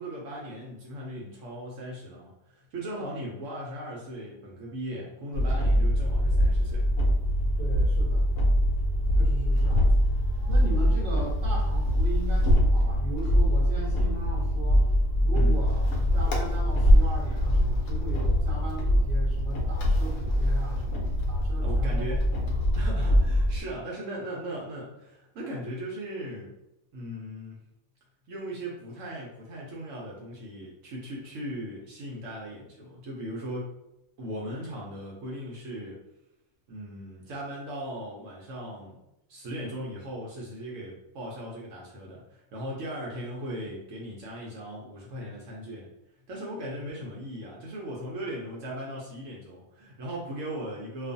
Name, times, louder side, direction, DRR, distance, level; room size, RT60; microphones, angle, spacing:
voice 1, 0.0-6.9 15.3-15.6 21.6-22.3 22.8-26.5 26.9-27.6 28.3-33.7 34.2-36.0 36.7-39.0 39.3-45.9 46.3-51.1, equal, 70° right, -3 dB, 0.9 m, -38 dB
sound 1, 5.3-23.6, equal, 70° left, 0.9 m, -23 dB
voice 2, 7.6-8.3 9.2-9.9 10.5-14.9 15.2-22.2 46.7-46.8, right 2 dB, 40° right, -4 dB, 0.7 m, -38 dB
2.4 x 2.4 x 2.5 m, 0.89 s
omnidirectional pair, 1.5 m